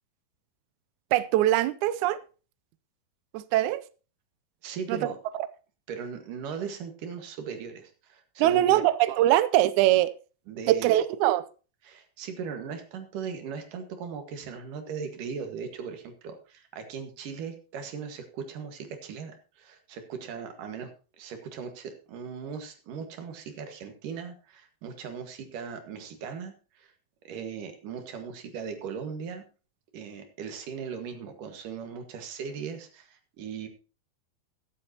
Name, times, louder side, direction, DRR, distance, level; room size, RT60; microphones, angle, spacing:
voice 1, 1.1-2.2 3.3-3.8 4.9-5.1 8.4-10.1 10.7-11.4, right 14 dB, 85° right, 14 dB, 1.7 m, -22 dB
voice 2, 4.6-5.2 5.9-8.8 10.5-11.0 11.8-20.9 21.2-26.9 27.2-29.4 29.9-33.7, right 6 dB, 65° right, 6 dB, 3.1 m, -38 dB
22.0 x 7.8 x 2.9 m, 0.35 s
omnidirectional pair, 4.2 m